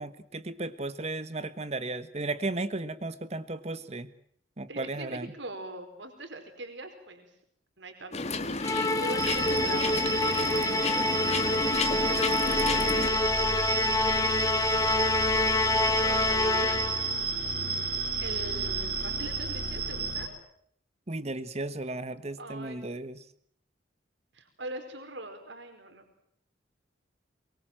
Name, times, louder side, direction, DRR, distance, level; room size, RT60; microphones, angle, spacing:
voice 1, 0.0-4.1 4.6-5.3 21.1-23.2, right 2 dB, 35° right, 13 dB, 1.3 m, -35 dB
voice 2, 4.7-7.3 7.8-14.3 14.9-16.8 17.6-20.4 22.4-23.1 24.3-26.0, right 2 dB, 70° right, 6 dB, 4.7 m, -42 dB
sound 1, 8.1-13.1, left 3 dB, 35° left, 1.8 m, -32 dB
Musical instrument, 8.6-17.1, left 3 dB, 20° left, 1.1 m, -27 dB
sound 2, 9.2-20.3, right 4 dB, 50° right, 3.5 m, -32 dB
23.5 x 23.0 x 7.6 m, 0.66 s
head